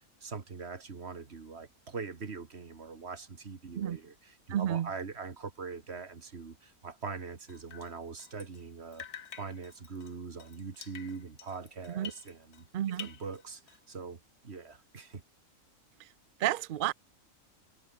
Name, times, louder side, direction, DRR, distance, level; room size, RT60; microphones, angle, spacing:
voice 1, 0.0-9.1 9.4-15.2, right 4 dB, 45° right, 2.1 m, -42 dB
voice 2, 4.5-4.9 12.0-12.1 12.7-13.1 16.4-16.9, right 12 dB, 70° right, 0.5 m, -30 dB
Drip, 7.5-8.7 8.9-12.7 12.9-14.0, left 8 dB, 90° left, 1.8 m, -49 dB
omnidirectional pair, 1.6 m